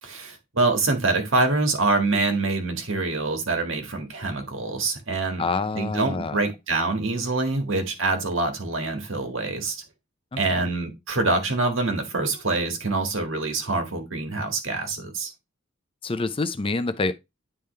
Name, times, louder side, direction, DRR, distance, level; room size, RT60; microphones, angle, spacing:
voice 1, 0.0-5.4 5.7-9.8 10.4-15.3, right 3 dB, 65° right, 1.7 m, -25 dB
voice 2, 5.4-6.4 10.3-10.7 16.0-17.1, left 3 dB, 25° left, 0.5 m, -27 dB
10.0 x 3.7 x 3.2 m
head